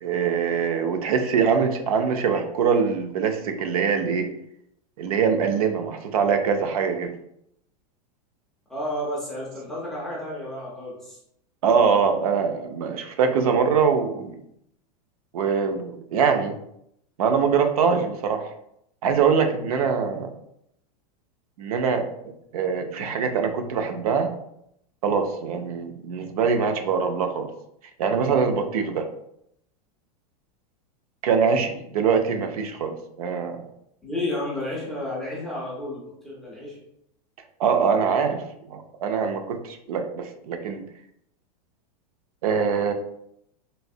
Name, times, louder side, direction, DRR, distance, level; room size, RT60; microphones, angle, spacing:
voice 1, 0.0-4.3 5.0-7.1 11.6-14.4 15.3-16.5 17.2-18.5 19.0-20.3 21.6-22.1 22.5-24.3 25.0-27.5 28.0-29.1 31.2-33.6 37.6-38.4 38.7-40.8 42.4-42.9, right 6 dB, 65° right, 6 dB, 0.5 m, -23 dB
voice 2, 8.7-11.2 34.0-36.8, left 1 dB, ahead, -7 dB, 0.3 m, -31 dB
3.2 x 2.6 x 2.6 m, 0.76 s
supercardioid pair, 180°, 20 cm